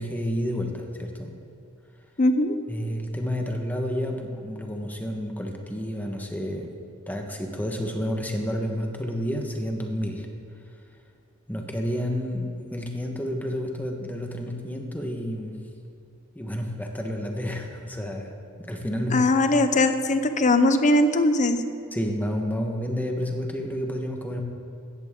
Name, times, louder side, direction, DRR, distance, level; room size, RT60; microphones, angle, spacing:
voice 1, 0.0-1.4 2.7-6.7 7.1-10.3 11.5-15.6 16.3-18.3 18.6-19.3 21.9-24.4, equal, 10° left, 2 dB, 1.3 m, -30 dB
voice 2, 2.2-2.6 19.1-21.6, left 2 dB, 35° left, 9 dB, 0.7 m, -20 dB
16.5 x 13.5 x 3.8 m, 2.4 s
head